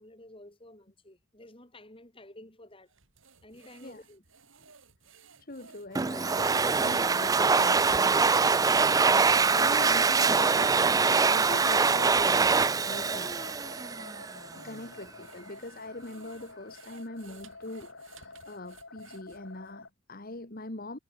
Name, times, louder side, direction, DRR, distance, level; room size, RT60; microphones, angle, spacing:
voice 1, 0.0-2.9 3.4-4.2 5.6-5.7, left 1 dB, 25° left, 7.8 m, -51 dB
sound 1, 2.9-12.0 12.7-12.8 13.4-19.7, right 5 dB, 65° right, 6.4 m, -56 dB
voice 2, 5.4-11.0 11.2-12.6 12.8-13.4 14.5-21.0, left 2 dB, 45° left, 1.9 m, -42 dB
Domestic sounds home sounds, 6.0-14.4, right 4 dB, 15° right, 0.4 m, -24 dB
sound 2, 8.8-19.9, left 3 dB, 60° left, 7.1 m, -49 dB
head